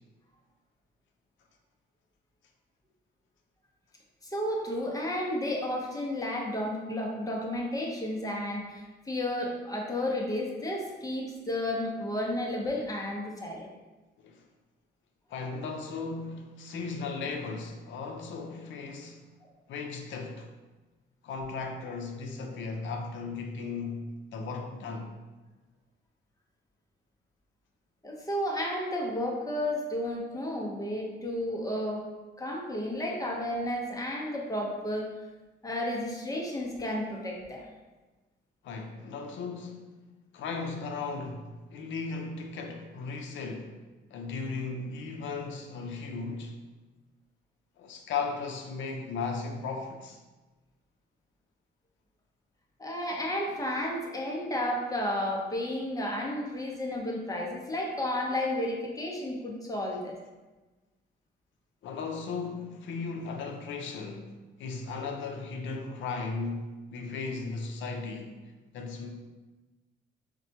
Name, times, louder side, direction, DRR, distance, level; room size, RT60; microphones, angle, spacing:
voice 1, 4.2-13.7 28.0-32.0 32.4-35.1 35.6-37.7 52.8-60.2, left 1 dB, 15° left, -2 dB, 0.6 m, -32 dB
voice 2, 15.3-19.2 19.7-20.5 21.2-25.1 38.6-39.9 40.3-43.7 44.1-46.6 47.8-50.2 61.8-64.3 64.6-68.3 68.7-69.1, left 4 dB, 70° left, 3 dB, 0.5 m, -36 dB
4.1 x 2.2 x 2.8 m, 1.2 s
cardioid pair, 90°, 20 cm